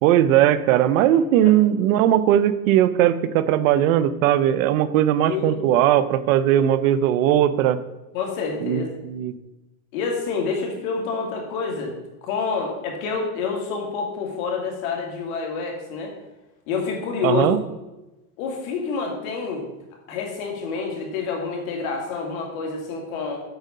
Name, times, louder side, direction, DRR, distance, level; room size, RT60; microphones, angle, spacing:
voice 1, 0.0-7.8 8.6-9.3 17.2-17.6, right 11 dB, 65° right, 14 dB, 0.7 m, -19 dB
voice 2, 5.2-5.7 8.1-8.9 9.9-11.9 12.2-16.1 16.7-17.5 18.4-19.6 20.1-23.4, left 5 dB, 65° left, 1 dB, 2.5 m, -28 dB
8.0 x 4.6 x 5.4 m, 1.0 s
supercardioid pair, 135°, 44 cm